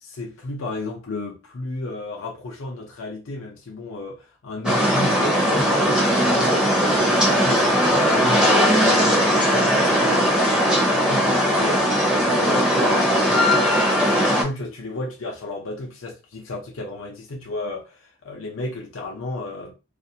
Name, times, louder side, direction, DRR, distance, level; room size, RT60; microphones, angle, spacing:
voice 1, 0.0-19.7, left 2 dB, 70° left, 0.6 m, -33 dB
sound 1, 4.6-14.4, equal, 5° right, 0.6 m, -19 dB
2.5 x 2.1 x 2.7 m
head